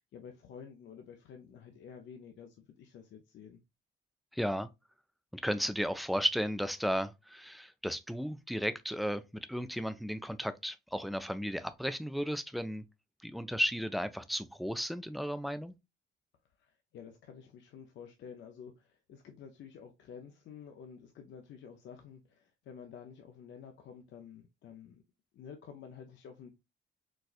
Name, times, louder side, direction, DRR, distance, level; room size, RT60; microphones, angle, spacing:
voice 1, 0.0-3.6 16.6-25.0 25.3-26.5, left 7 dB, 70° left, 0.6 m, -50 dB
voice 2, 4.3-4.7 5.3-12.8 13.2-15.7, equal, ahead, 0.3 m, -34 dB
4.1 x 2.3 x 2.4 m
cardioid pair, 90°, 20 cm